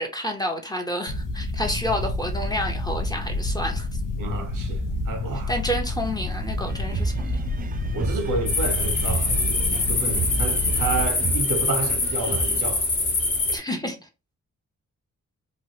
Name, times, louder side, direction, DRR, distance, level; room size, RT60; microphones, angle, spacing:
voice 1, 0.0-3.9 5.5-7.4 13.5-14.0, equal, 10° left, 0.6 m, -29 dB
sound 1, 1.1-11.1, left 2 dB, 80° left, 0.6 m, -29 dB
voice 2, 4.2-5.5 7.9-12.9, right 3 dB, 80° right, 1.0 m, -30 dB
sound 2, 6.7-12.6, right 4 dB, 30° right, 0.4 m, -32 dB
sound 3, 8.5-13.6, left 3 dB, 35° left, 1.1 m, -24 dB
2.9 x 2.4 x 2.7 m
cardioid pair, 90°, 32 cm